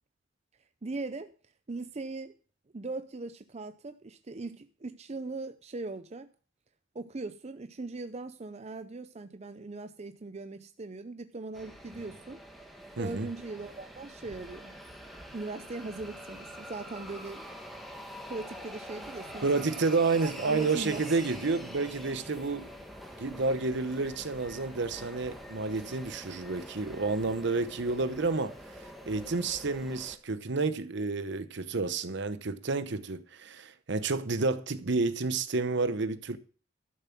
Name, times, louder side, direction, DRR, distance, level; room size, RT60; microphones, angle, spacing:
voice 1, 0.8-1.3 1.7-2.3 2.7-6.3 6.9-12.4 13.0-14.8 15.3-17.5 18.3-19.7 20.2-21.0, right 3 dB, 35° right, 0.5 m, -40 dB
sound 1, 11.5-30.2, equal, ahead, 1.5 m, -45 dB
voice 2, 13.0-13.3 19.4-22.7 23.2-36.4, right 3 dB, 60° right, 0.9 m, -30 dB
12.0 x 7.1 x 5.9 m
head